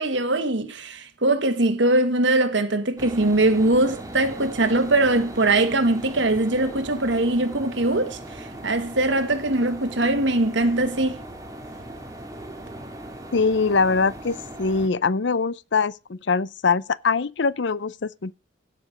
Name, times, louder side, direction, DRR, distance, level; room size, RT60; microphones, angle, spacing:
voice 1, 0.0-11.2, right 2 dB, 70° right, 1.7 m, -22 dB
sound 1, 3.0-14.9, right 1 dB, 20° right, 2.0 m, -38 dB
voice 2, 13.3-18.3, left 4 dB, 70° left, 0.6 m, -23 dB
16.5 x 6.2 x 5.0 m
head